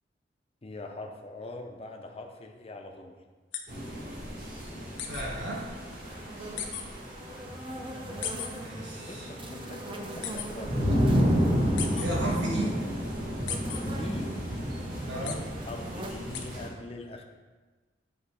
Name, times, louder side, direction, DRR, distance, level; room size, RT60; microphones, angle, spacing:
voice 1, 0.6-3.2 9.1-11.0 12.2-12.3 14.0-14.3 15.2-17.2, left 2 dB, 30° left, 3 dB, 0.5 m, -42 dB
sound 1, 3.5-3.6 5.0-5.2 6.6-6.8 8.2-8.5 10.2-10.5 11.8-12.1 13.5-13.8 15.3-15.4 16.3-16.4, left 9 dB, 85° left, 0.6 m, -34 dB
sound 2, 3.7-16.7, equal, 50° right, 1.8 m, -31 dB
voice 2, 5.1-5.7 7.9-8.1 8.6-9.3 11.9-12.8 15.1-15.4, right 1 dB, 70° right, -3 dB, 1.5 m, -34 dB
sound 3, 5.8-16.7, right 1 dB, 30° right, 0.5 m, -44 dB
7.2 x 3.0 x 4.7 m, 1.3 s
head